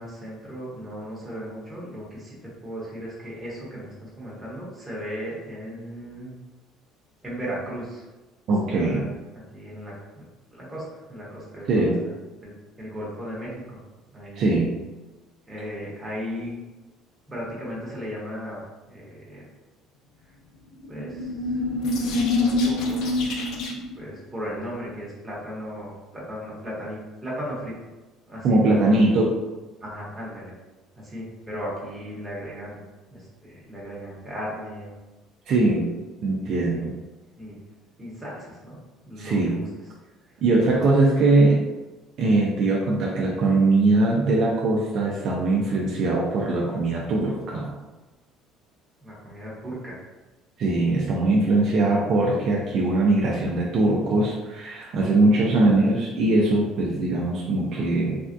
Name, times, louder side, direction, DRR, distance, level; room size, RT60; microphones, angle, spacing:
voice 1, 0.0-6.3 7.2-8.1 8.7-9.1 9.5-10.3 10.5-12.5 12.8-13.8 14.1-14.4 15.4-16.5 17.3-18.6 18.9-19.4 20.9-21.6 22.2-23.0 24.0-27.7 28.3-28.9 29.8-30.5 30.9-32.8 33.1-35.0 36.3-36.8 37.4-37.6 38.0-38.8 39.0-39.7 40.3-40.9 41.5-41.6 49.0-50.1 55.4-55.5, equal, 10° right, -7 dB, 1.1 m, -36 dB
voice 2, 8.5-9.1 11.7-12.0 14.4-14.7 28.4-29.3 35.5-35.9 36.2-36.9 39.2-39.6 40.4-41.6 42.2-47.7 50.6-58.2, right 2 dB, 50° right, -3 dB, 0.4 m, -21 dB
sound 1, 20.8-24.0, left 2 dB, 60° left, 0.5 m, -25 dB
3.3 x 2.3 x 2.5 m, 1.1 s
cardioid pair, 145°, 0 cm